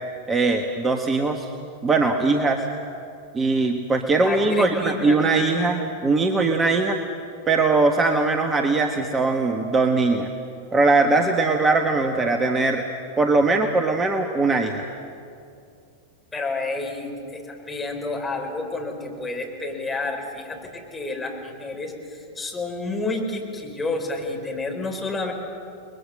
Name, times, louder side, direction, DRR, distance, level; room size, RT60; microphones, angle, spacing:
voice 1, 0.3-1.5 1.8-2.6 3.3-7.0 7.5-10.3 10.7-12.8 13.2-14.8, right 3 dB, 20° right, 4 dB, 1.4 m, -20 dB
voice 2, 4.3-5.2 16.3-25.3, left 2 dB, 10° left, 1 dB, 4.7 m, -30 dB
29.5 x 21.0 x 6.7 m, 2.5 s
figure-of-eight pair, 90°, 0 cm